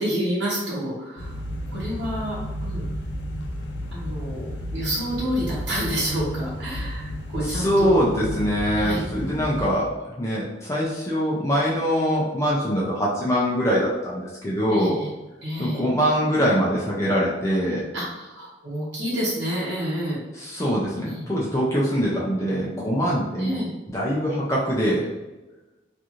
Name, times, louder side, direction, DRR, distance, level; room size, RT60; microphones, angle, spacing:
voice 1, 0.0-1.4 1.7-2.8 3.9-8.0 8.7-9.0 9.3-9.5 14.7-15.1 15.4-15.9 17.9-20.2 21.0-21.3 23.4-23.7, equal, 90° right, -8 dB, 0.8 m, -29 dB
sound 1, 1.2-9.7, equal, 75° left, 0.5 m, -32 dB
voice 2, 7.4-9.9 10.2-15.0 15.6-17.9 20.4-23.6 23.9-25.1, equal, 15° left, -6 dB, 0.4 m, -23 dB
2.9 x 2.5 x 2.4 m, 1.1 s
head